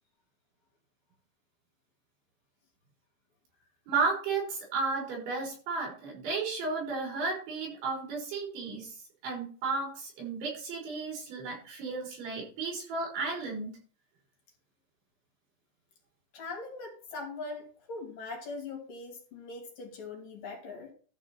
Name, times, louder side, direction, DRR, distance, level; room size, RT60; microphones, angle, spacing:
voice 1, 3.9-9.0 9.2-13.7, right 4 dB, 80° right, -2 dB, 8.0 m, -33 dB
voice 2, 16.3-20.9, left 3 dB, 50° left, 0 dB, 4.2 m, -41 dB
13.0 x 5.0 x 6.0 m, 0.41 s
omnidirectional pair, 5.2 m